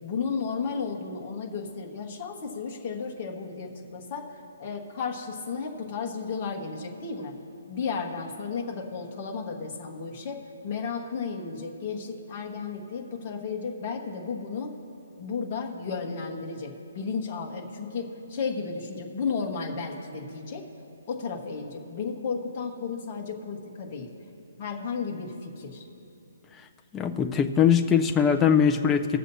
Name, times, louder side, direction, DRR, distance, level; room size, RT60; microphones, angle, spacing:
voice 1, 0.0-7.3 7.7-14.7 15.2-20.6 21.1-24.1 24.6-25.8, left 5 dB, 25° left, -1 dB, 1.3 m, -33 dB
voice 2, 26.9-29.2, left 7 dB, 5° left, 3 dB, 0.4 m, -21 dB
21.0 x 7.5 x 2.7 m, 2.8 s
hypercardioid pair, 180°, 0 cm